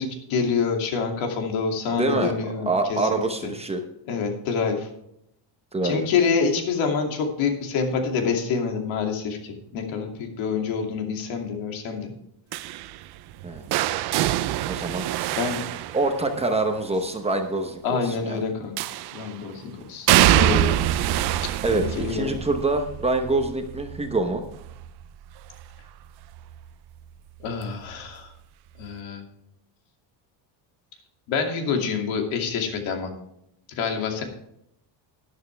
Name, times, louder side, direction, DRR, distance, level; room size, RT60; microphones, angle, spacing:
voice 1, 0.0-3.3 4.1-4.9 5.8-12.1 15.3-15.6 17.8-18.7 19.1-20.7 21.4-22.3 27.4-28.3 28.8-29.2 31.3-33.1 33.7-34.2, left 5 dB, 85° left, 3 dB, 2.7 m, -27 dB
voice 2, 2.0-2.3 2.7-3.8 5.7-6.1 13.4-13.6 14.7-15.1 15.9-18.4 21.6-24.4, right 2 dB, 15° right, 5 dB, 0.9 m, -25 dB
sound 1, 12.5-16.6 18.8-19.4 20.1-25.9 26.2-26.6 27.9-28.0, right 13 dB, 55° right, 0.6 m, -25 dB
12.5 x 11.0 x 3.4 m, 0.77 s
cardioid pair, 180°, 46 cm